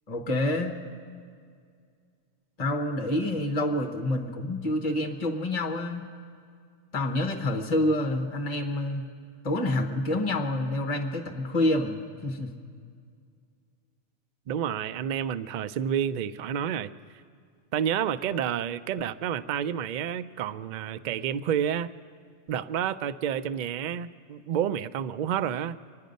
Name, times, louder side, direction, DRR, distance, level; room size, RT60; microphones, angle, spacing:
voice 1, 0.1-0.8 2.6-6.0 6.9-9.0 9.4-12.5, left 1 dB, 35° left, 3 dB, 1.2 m, -27 dB
voice 2, 14.5-16.9 17.7-21.9 22.5-25.8, right 9 dB, 60° right, 12 dB, 0.5 m, -29 dB
25.5 x 10.0 x 5.3 m, 2.1 s
omnidirectional pair, 1.2 m